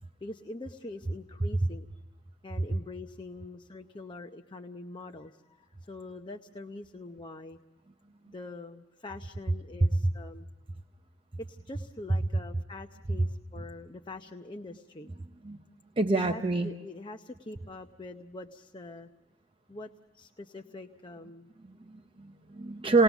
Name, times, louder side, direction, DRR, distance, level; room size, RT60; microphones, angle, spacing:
voice 1, 0.2-1.9 2.4-7.6 8.3-10.5 11.4-15.1 16.1-19.1 19.7-21.5, left 2 dB, 25° left, 6 dB, 0.7 m, -44 dB
voice 2, 16.0-16.7 21.7-23.0, right 3 dB, 30° right, 6 dB, 0.7 m, -27 dB
28.5 x 19.5 x 7.1 m, 1.2 s
head